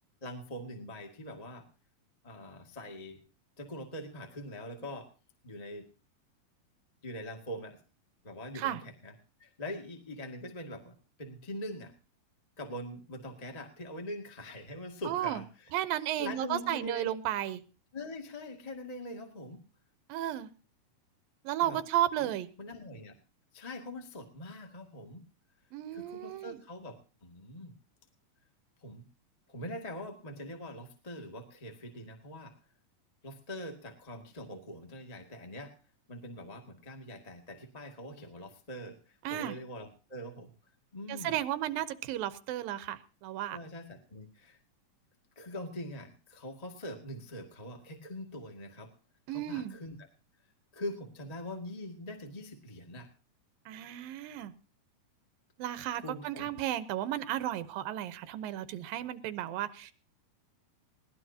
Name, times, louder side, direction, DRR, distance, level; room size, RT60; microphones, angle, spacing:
voice 1, 0.2-1.6 2.2-3.2 3.6-5.1 5.4-5.9 7.0-7.8 8.2-9.1 9.4-11.9 12.6-15.7 16.2-17.1 17.9-19.6 21.6-21.8 22.2-22.3 22.6-23.2 23.5-25.2 25.9-27.8 28.8-29.0 29.5-32.5 33.2-35.7 36.1-40.5 40.9-41.4 43.5-44.6 45.4-49.0 49.3-50.0 50.7-53.1 56.0-56.5, left 1 dB, 15° left, 3 dB, 1.7 m, -43 dB
voice 2, 15.0-15.4 15.7-17.6 20.1-20.5 21.4-22.5 25.7-26.6 39.2-39.6 41.1-43.6 49.3-49.7 53.7-54.5 55.6-59.9, right 12 dB, 90° right, 13 dB, 2.8 m, -33 dB
21.0 x 18.0 x 2.8 m, 0.35 s
omnidirectional pair, 3.9 m